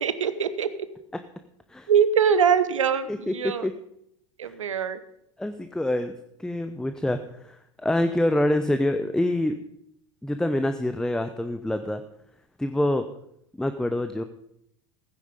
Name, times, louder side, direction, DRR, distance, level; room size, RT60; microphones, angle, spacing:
voice 1, 0.0-0.7 1.9-3.7 4.4-5.0, right 7 dB, 80° right, 13 dB, 1.0 m, -23 dB
voice 2, 5.4-6.1 6.4-9.5 10.2-12.0 12.6-13.1 13.6-14.2, left 1 dB, 5° left, 9 dB, 0.9 m, -26 dB
16.0 x 9.9 x 5.2 m, 0.75 s
figure-of-eight pair, 80°, 16 cm